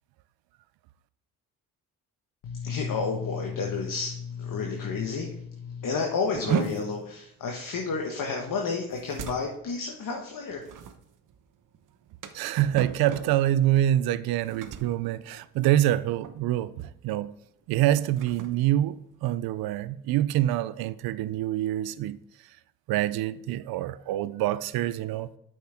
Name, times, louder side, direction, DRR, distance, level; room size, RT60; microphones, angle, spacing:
voice 1, 2.4-10.6, left 5 dB, 55° left, 1.4 m, -31 dB
sound 1, 6.3-16.0 16.2-16.6 17.0-17.2 17.8-19.7, right 7 dB, 55° right, 1.0 m, -37 dB
voice 2, 12.3-17.3 17.7-22.2 22.9-25.3, right 13 dB, 70° right, 0.6 m, -26 dB
8.2 x 6.2 x 3.5 m
supercardioid pair, 65°, 38 cm